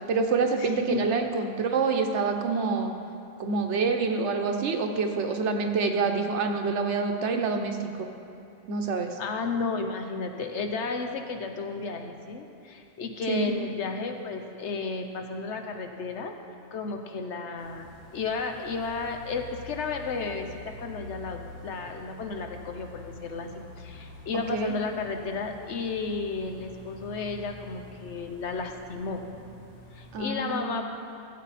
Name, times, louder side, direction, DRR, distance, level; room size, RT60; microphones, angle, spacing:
voice 1, 0.1-2.9 3.4-8.1 8.7-9.2 13.3-13.5 24.3-24.7 30.1-30.8, right 4 dB, 85° right, 5 dB, 1.2 m, -27 dB
voice 2, 0.6-1.1 9.2-16.3 16.7-29.2 29.9-30.8, left 4 dB, 80° left, 5 dB, 1.2 m, -33 dB
sound 1, 17.6-30.2, left 3 dB, 65° left, 2.4 m, -47 dB
15.5 x 7.6 x 4.2 m, 2.6 s
omnidirectional pair, 1.2 m